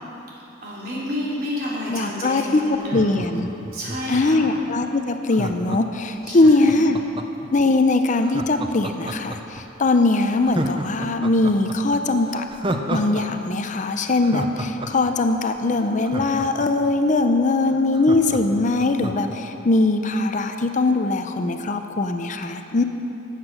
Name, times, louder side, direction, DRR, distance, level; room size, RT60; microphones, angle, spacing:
voice 1, 0.6-3.2 3.7-4.4 6.2-6.9, left 1 dB, 55° right, -6 dB, 3.4 m, -30 dB
voice 2, 1.9-3.5 4.1-7.0 7.5-12.5 12.9-22.8, left 2 dB, 40° left, 7 dB, 0.6 m, -21 dB
Laughter, 2.7-4.4 5.3-7.5 8.2-9.6 10.0-10.1 10.4-13.2 13.5-13.6 14.0-16.9 17.3-17.4 17.6-19.4 19.7-19.8, right 1 dB, 25° right, 0.7 m, -31 dB
14.0 x 8.3 x 6.2 m, 2.9 s
head